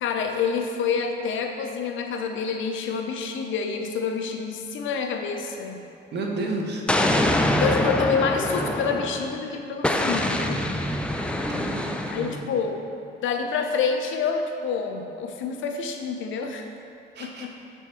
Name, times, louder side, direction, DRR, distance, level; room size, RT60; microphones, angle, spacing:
voice 1, 0.0-5.8 7.6-10.6 12.1-12.8 13.2-16.7 17.2-17.5, left 5 dB, 75° left, 4 dB, 0.6 m, -27 dB
voice 2, 6.1-6.8 11.5-12.5 17.1-17.5, right 2 dB, 60° right, 1 dB, 0.9 m, -32 dB
Explosion, 6.9-9.3 9.8-12.4, left 1 dB, 5° left, 0.3 m, -24 dB
6.9 x 3.6 x 4.3 m, 2.5 s
cardioid pair, 90°, 20 cm